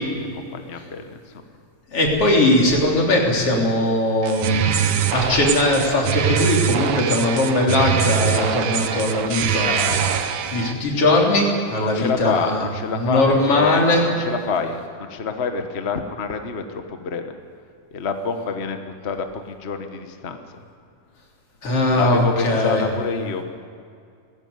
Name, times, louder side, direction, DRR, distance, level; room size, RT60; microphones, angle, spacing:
voice 1, 0.3-1.4 11.8-17.3 17.9-20.6 21.9-23.4, left 5 dB, 85° left, 6 dB, 0.5 m, -27 dB
voice 2, 1.9-10.3 10.5-12.6 13.0-14.0 21.6-22.8, left 1 dB, 50° left, -1 dB, 4.4 m, -20 dB
sound 1, 4.2-10.7, right 8 dB, 70° right, 1.1 m, -23 dB
19.5 x 16.0 x 9.6 m, 2.3 s
omnidirectional pair, 3.4 m